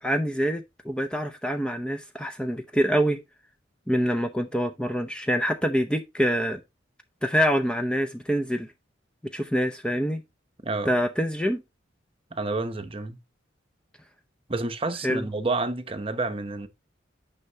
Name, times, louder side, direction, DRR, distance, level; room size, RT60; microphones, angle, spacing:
voice 1, 0.0-3.2 3.9-6.6 7.2-8.7 9.3-10.2 10.9-11.6 15.0-15.2, equal, 5° left, 0.6 m, -25 dB
voice 2, 10.6-10.9 12.3-13.2 14.5-16.7, right 3 dB, 30° right, 0.8 m, -29 dB
9.8 x 5.7 x 2.8 m
head